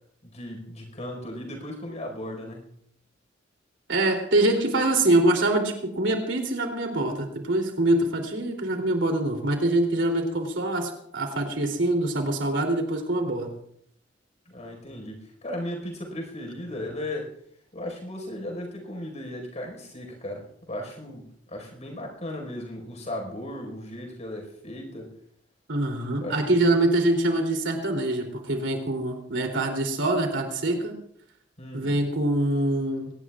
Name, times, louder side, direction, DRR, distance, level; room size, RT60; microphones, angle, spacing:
voice 1, 0.2-2.7 14.4-17.3 17.7-25.1 26.2-26.8 31.6-32.0, left 1 dB, 40° left, 1 dB, 4.9 m, -36 dB
voice 2, 3.9-13.5 25.7-31.0 31.7-33.1, right 1 dB, 75° right, 2 dB, 3.2 m, -24 dB
22.5 x 18.5 x 2.5 m, 0.70 s
head